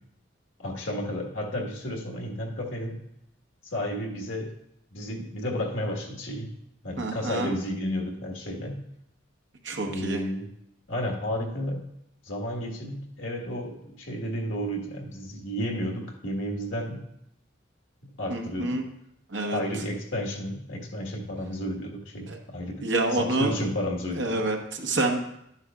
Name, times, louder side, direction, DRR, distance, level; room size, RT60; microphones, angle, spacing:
voice 1, 0.6-3.0 3.7-4.5 4.9-6.5 6.8-8.9 9.8-10.4 10.9-11.9 12.2-17.0 18.0-18.8 19.5-24.4, equal, 85° left, 1 dB, 1.6 m, -32 dB
voice 2, 7.0-7.5 9.6-10.2 18.3-18.8 19.3-19.8 22.3-22.4 22.8-23.6 24.1-25.2, right 2 dB, 75° right, 3 dB, 1.2 m, -28 dB
11.5 x 9.6 x 2.4 m, 0.77 s
head